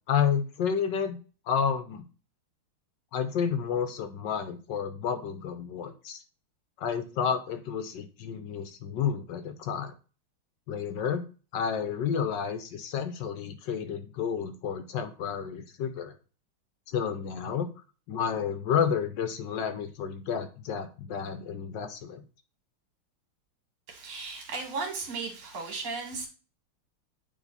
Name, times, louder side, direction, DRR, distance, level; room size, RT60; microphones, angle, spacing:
voice 1, 0.1-1.2 1.5-2.0 3.1-6.2 6.8-9.9 10.7-11.2 11.5-16.1 16.9-17.7 18.1-22.2, left 7 dB, 70° left, 1.3 m, -30 dB
voice 2, 23.9-26.3, right 4 dB, 75° right, 2.7 m, -35 dB
9.3 x 3.5 x 4.0 m
omnidirectional pair, 2.3 m